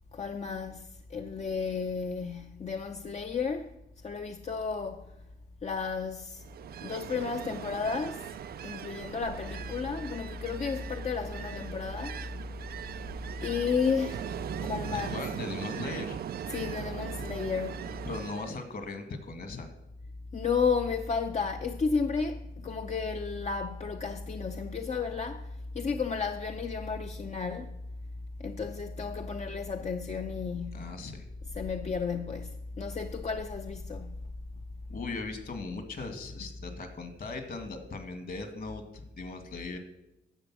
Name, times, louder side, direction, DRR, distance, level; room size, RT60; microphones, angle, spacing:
voice 1, 0.1-3.7 4.0-5.1 5.6-6.4 6.8-8.4 8.6-12.4 13.4-15.2 16.5-17.8 20.3-27.8 28.4-30.9 31.5-34.3, left 5 dB, 35° left, 0.7 m, -33 dB
Ocean, 6.4-18.6, right 10 dB, 55° right, 0.4 m, -40 dB
voice 2, 14.9-16.2 18.1-19.7 30.7-31.3 34.9-39.8, left 3 dB, 55° left, 2.0 m, -38 dB
10.5 x 6.9 x 6.1 m
cardioid pair, 70°, 19 cm